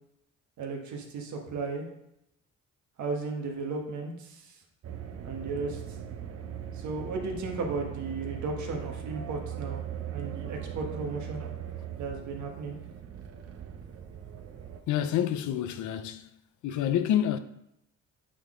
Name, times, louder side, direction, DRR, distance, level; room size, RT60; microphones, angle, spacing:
voice 1, 0.6-1.9 3.0-4.6 5.2-6.0 6.7-9.8 10.1-11.4 12.0-12.8, right 3 dB, 70° right, 1.4 m, -35 dB
sound 1, 4.8-14.8, right 9 dB, 50° right, 0.7 m, -39 dB
voice 2, 14.9-16.3 16.6-17.4, left 10 dB, 75° left, 0.6 m, -28 dB
8.2 x 3.9 x 3.7 m
cardioid pair, 90°, 30 cm